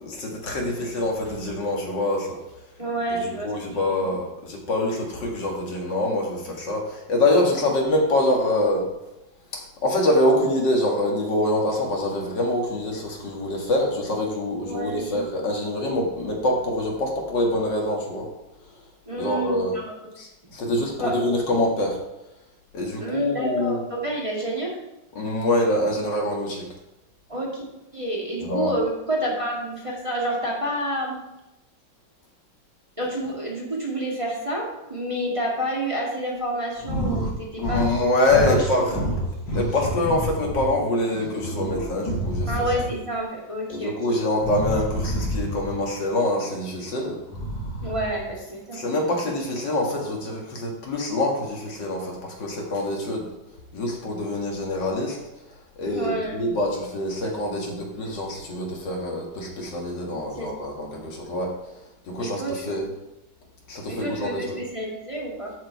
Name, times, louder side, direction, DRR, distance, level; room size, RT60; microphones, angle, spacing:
voice 1, 0.0-2.4 3.1-8.9 9.8-18.3 19.2-19.8 20.2-22.0 22.7-23.8 25.2-26.7 28.4-28.7 37.6-39.0 39.5-42.5 43.7-47.2 48.7-53.3 53.7-55.2 55.8-61.5 62.0-62.9 63.7-64.6, left 1 dB, 70° left, 0 dB, 2.3 m, -25 dB
voice 2, 2.8-3.5 14.6-15.1 19.1-20.1 21.0-21.2 23.0-24.8 27.3-27.6 27.9-31.2 33.0-37.9 38.2-38.6 42.5-44.2 47.8-48.8 55.9-56.4 60.3-61.0 62.2-62.9 63.9-65.5, right 1 dB, 15° right, -4 dB, 2.0 m, -29 dB
sound 1, 36.8-37.3 37.6-38.0 38.3-40.7 41.1-43.0 44.4-45.8 47.2-48.3, right 1 dB, 90° left, 5.0 m, -28 dB
13.0 x 5.0 x 4.6 m, 0.94 s
omnidirectional pair, 2.0 m